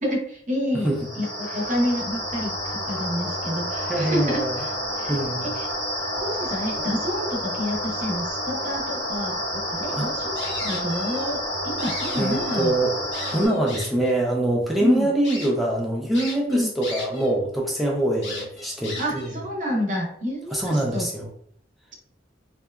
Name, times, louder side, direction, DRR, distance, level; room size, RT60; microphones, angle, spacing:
voice 1, 0.0-5.7 6.2-12.7 14.8-15.1 16.5-16.7 19.0-21.1, equal, 45° right, 0 dB, 0.7 m, -29 dB
sound 1, 0.9-13.5, equal, 25° left, 0.9 m, -29 dB
voice 2, 3.8-4.6 5.1-5.5 9.9-10.1 12.2-12.9 13.3-19.3 20.5-21.3, right 1 dB, ahead, -2 dB, 0.4 m, -24 dB
sound 2, 10.4-11.3 11.6-12.7 13.1-14.1 14.7-14.8 15.2-15.5 16.1-17.3 17.6-17.7 18.2-19.3, left 2 dB, 75° left, 0.9 m, -36 dB
2.7 x 2.2 x 2.2 m, 0.64 s
head